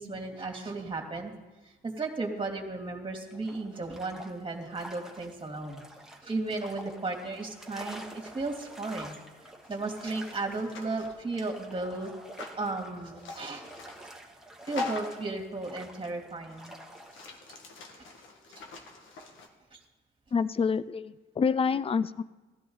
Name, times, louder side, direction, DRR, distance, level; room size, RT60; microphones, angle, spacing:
voice 1, 0.0-1.3 1.6-5.8 6.2-9.2 9.7-12.1 12.6-13.6 14.6-16.8 18.5-18.6 19.7-19.8, right 3 dB, 25° right, 2 dB, 2.6 m, -35 dB
sound 1, 3.3-17.3, right 1 dB, ahead, 1.6 m, -48 dB
sound 2, 9.6-11.1 12.4-12.6 13.2-14.1 14.7-15.3 16.0-16.1 16.5-19.5, left 3 dB, 80° left, 1.7 m, -42 dB
voice 2, 20.3-22.2, left 5 dB, 30° left, 17 dB, 0.5 m, -27 dB
15.5 x 13.0 x 4.0 m, 1.2 s
cardioid pair, 90°, 20 cm